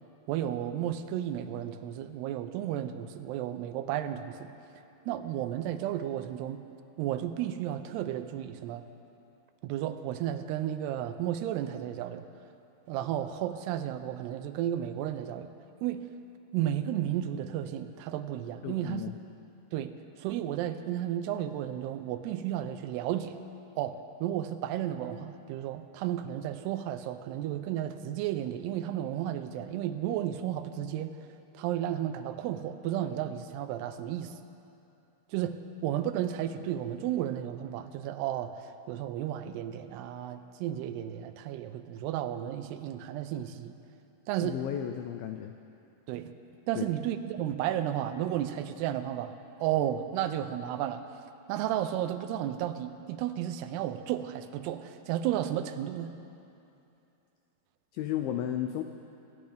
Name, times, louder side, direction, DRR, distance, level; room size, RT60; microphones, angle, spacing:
voice 1, 0.3-4.5 5.1-6.6 7.0-8.8 9.6-12.3 12.9-15.5 15.8-16.1 16.5-19.0 19.7-19.9 20.2-23.4 23.8-31.2 31.5-34.3 35.3-43.8 44.3-44.6 46.1-46.3 46.7-51.0 51.5-56.1, right 11 dB, 85° right, 10 dB, 2.7 m, -33 dB
voice 2, 18.6-19.2 44.4-45.5 46.8-46.9 57.9-58.8, left 10 dB, 85° left, 6 dB, 2.0 m, -33 dB
25.5 x 12.0 x 3.4 m, 2.7 s
omnidirectional pair, 4.7 m